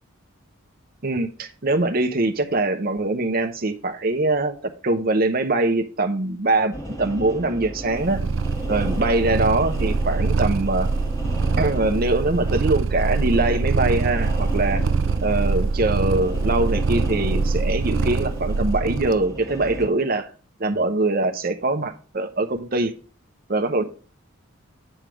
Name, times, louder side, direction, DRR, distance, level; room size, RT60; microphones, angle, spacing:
voice 1, 1.0-8.2 8.7-10.9 11.6-14.8 15.2-20.3 20.6-22.9 23.5-23.8, right 2 dB, 45° right, 0.8 m, -23 dB
sound 1, 6.7-19.9, right 1 dB, 15° left, 1.5 m, -34 dB
Purr, 7.9-19.2, right 4 dB, 60° right, 0.4 m, -24 dB
8.9 x 3.5 x 6.0 m
head